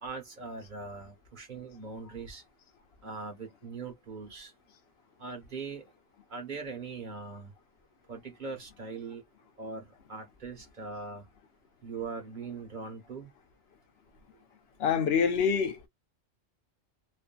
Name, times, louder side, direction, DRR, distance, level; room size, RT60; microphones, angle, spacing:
voice 1, 0.0-2.4 3.0-4.5 5.2-5.8 6.3-7.5 8.1-9.2 9.6-9.8 10.1-11.2 11.8-13.3, right 4 dB, 45° right, 1.1 m, -41 dB
voice 2, 14.8-15.9, left 6 dB, 65° left, 0.8 m, -26 dB
2.6 x 2.4 x 2.2 m
omnidirectional pair, 1.2 m